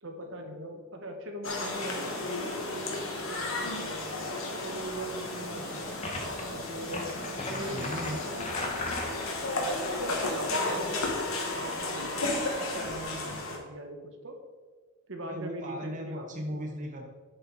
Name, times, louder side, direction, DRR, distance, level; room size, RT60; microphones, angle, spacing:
voice 1, 0.0-3.9 4.6-6.1 6.5-7.1 7.5-8.2 10.0-11.2 11.5-14.4 15.1-16.3 16.5-16.6, right 1 dB, 60° right, 4 dB, 1.1 m, -40 dB
sound 1, 1.4-13.6, left 2 dB, 75° left, 1.7 m, -33 dB
voice 2, 4.6-4.9 7.1-8.7 15.2-17.1, equal, 35° right, 2 dB, 1.0 m, -38 dB
sound 2, 6.0-6.4 6.9-9.4, left 2 dB, 30° left, 1.2 m, -37 dB
10.5 x 5.7 x 4.0 m, 1.4 s
head